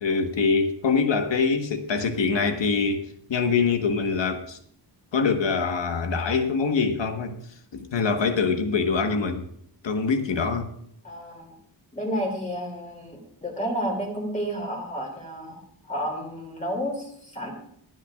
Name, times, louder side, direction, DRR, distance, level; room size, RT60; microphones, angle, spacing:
voice 1, 0.0-3.0 3.3-4.6 5.1-7.4 7.7-9.4 9.8-10.7, left 5 dB, 80° left, 1.4 m, -24 dB
voice 2, 11.0-11.5 11.9-17.5, equal, 15° left, 2.7 m, -31 dB
25.5 x 9.3 x 2.4 m
wide cardioid pair, 180°, 43 cm